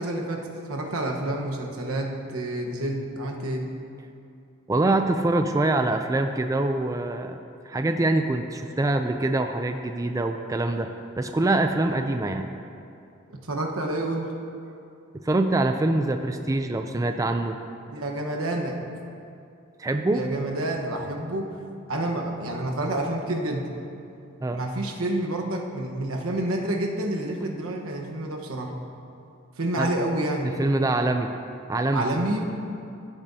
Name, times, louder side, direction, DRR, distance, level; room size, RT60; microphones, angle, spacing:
voice 1, 0.0-3.6 13.5-14.3 17.9-18.8 20.1-21.5 21.9-23.7 24.5-28.7 29.6-30.6 31.9-32.5, right 1 dB, 90° right, 1 dB, 1.2 m, -28 dB
voice 2, 4.7-7.4 7.7-10.9 11.2-12.5 15.2-17.6 19.8-20.2 24.4-24.6 29.8-29.9 30.6-31.3 31.7-32.1, right 2 dB, 15° right, 6 dB, 0.3 m, -24 dB
15.5 x 8.6 x 2.7 m, 2.6 s
head